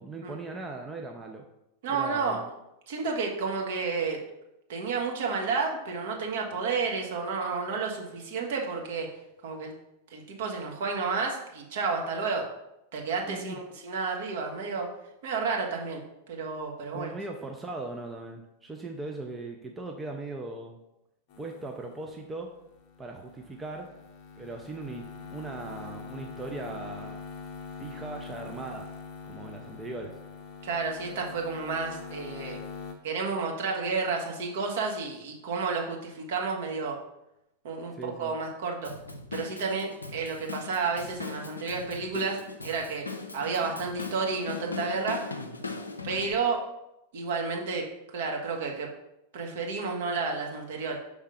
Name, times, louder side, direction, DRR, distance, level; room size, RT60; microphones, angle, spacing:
voice 1, 0.0-1.4 1.9-2.5 13.2-13.6 16.9-20.8 21.4-22.5 23.0-23.9 24.4-27.2 27.8-28.9 29.3-30.1 37.9-38.3, right 2 dB, 15° right, 2 dB, 0.6 m, -39 dB
voice 2, 1.8-2.4 2.9-4.2 4.7-9.1 9.4-9.7 10.1-12.5 12.9-14.9 15.2-16.0 16.3-17.1 30.6-32.6 33.0-37.0 37.6-38.9 39.3-43.0 43.3-45.3 46.0-46.6 47.1-47.8 48.1-48.9 49.3-51.0, right 4 dB, 55° right, 0 dB, 1.1 m, -31 dB
sound 1, 21.3-32.9, left 5 dB, 40° left, 0.8 m, -44 dB
Drum kit / Drum, 38.8-46.3, left 4 dB, 80° left, 0.5 m, -39 dB
5.5 x 3.4 x 5.0 m, 0.87 s
figure-of-eight pair, 90°, 0 cm